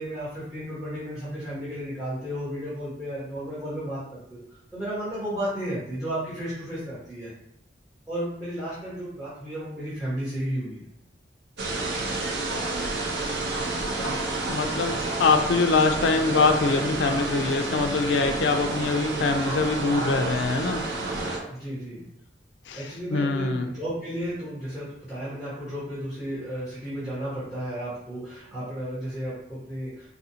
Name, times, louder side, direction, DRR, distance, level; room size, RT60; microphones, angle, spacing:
voice 1, 0.0-4.4 4.7-7.3 8.1-10.8 21.5-22.0 22.7-30.1, equal, 5° right, -12 dB, 1.3 m, -33 dB
Frankfurt station, 11.6-21.4, right 2 dB, 75° right, 0.7 m, -29 dB
voice 2, 14.0-20.8 22.7-23.7, left 4 dB, 85° left, 6 dB, 0.4 m, -24 dB
4.0 x 2.5 x 2.8 m, 0.76 s
head